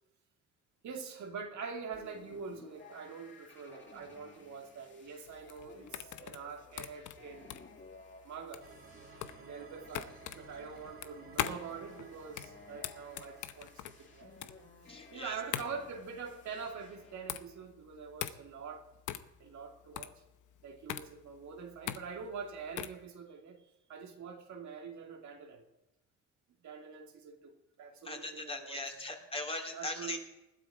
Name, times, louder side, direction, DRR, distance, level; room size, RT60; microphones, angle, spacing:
voice 1, 0.8-7.6 8.2-8.7 9.4-14.5 15.1-18.9 19.4-20.2 20.6-23.6 23.9-25.7 26.6-28.8 29.7-30.2, right 5 dB, 70° right, 2 dB, 2.5 m, -45 dB
sound 1, 1.9-17.6, left 3 dB, 40° left, 4.7 m, -57 dB
sound 2, 5.3-23.0, left 12 dB, 80° left, 0.9 m, -42 dB
sound 3, 8.6-15.7, right 4 dB, 45° right, 2.6 m, -56 dB
voice 2, 14.9-15.4 28.0-30.2, left 2 dB, 20° left, 2 dB, 2.8 m, -39 dB
20.0 x 12.5 x 5.0 m, 0.94 s
cardioid pair, 90°, 30 cm